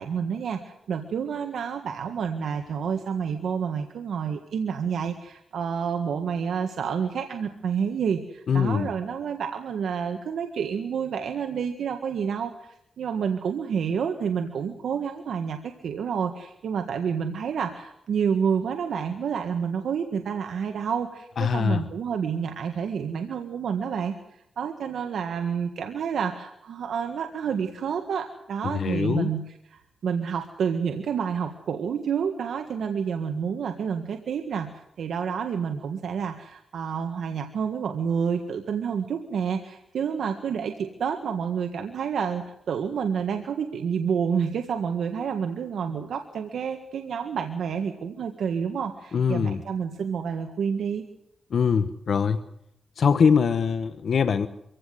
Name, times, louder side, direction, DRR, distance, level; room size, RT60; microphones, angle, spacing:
voice 1, 0.0-24.1 24.6-29.4 30.0-51.0, right 7 dB, 80° right, 5 dB, 1.7 m, -29 dB
voice 2, 8.5-8.9 21.4-21.8 28.6-29.3 49.1-49.6 51.5-52.4 53.0-54.5, left 6 dB, 60° left, 11 dB, 1.0 m, -23 dB
25.5 x 16.5 x 7.9 m, 0.80 s
cardioid pair, 100°, 0 cm